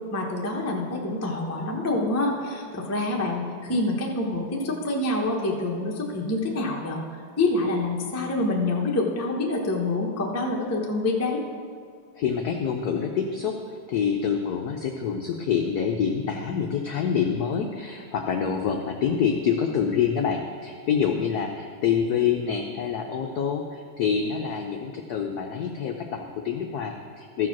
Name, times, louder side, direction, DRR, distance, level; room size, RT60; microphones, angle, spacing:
voice 1, 0.1-7.0 7.4-11.4, left 2 dB, 25° left, -1 dB, 0.3 m, -26 dB
voice 2, 12.2-27.5, left 7 dB, 85° left, 3 dB, 0.8 m, -26 dB
13.5 x 4.9 x 5.9 m, 2.2 s
omnidirectional pair, 2.4 m